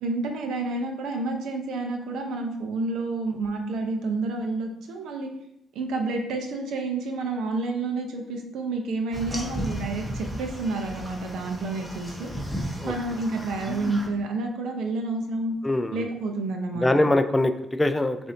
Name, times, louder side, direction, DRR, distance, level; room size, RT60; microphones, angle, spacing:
voice 1, 0.0-5.3 5.7-12.3 12.8-15.6 15.9-16.9, right 3 dB, 80° right, 3 dB, 0.7 m, -29 dB
sound 1, 9.1-14.1, equal, 5° right, 0.9 m, -34 dB
voice 2, 15.6-16.1 16.7-18.2, left 1 dB, 10° left, 8 dB, 0.3 m, -23 dB
6.6 x 2.7 x 2.7 m, 0.80 s
cardioid pair, 90°, 0 cm